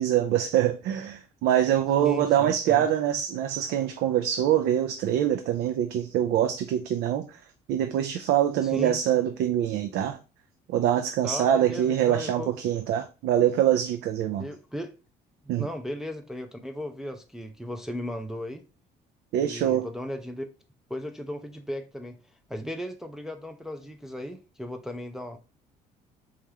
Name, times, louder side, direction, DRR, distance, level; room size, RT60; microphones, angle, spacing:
voice 1, 0.0-7.4 7.7-10.2 10.7-14.5 15.5-15.6 19.3-19.9, right 11 dB, 80° right, 0.4 m, -24 dB
voice 2, 2.0-2.9 8.6-9.0 11.2-12.5 14.4-14.9 15.4-18.7 19.4-20.5 20.9-22.2 22.5-25.4, left 1 dB, 5° right, 0.4 m, -36 dB
4.6 x 2.4 x 2.7 m
cardioid pair, 110°, 17 cm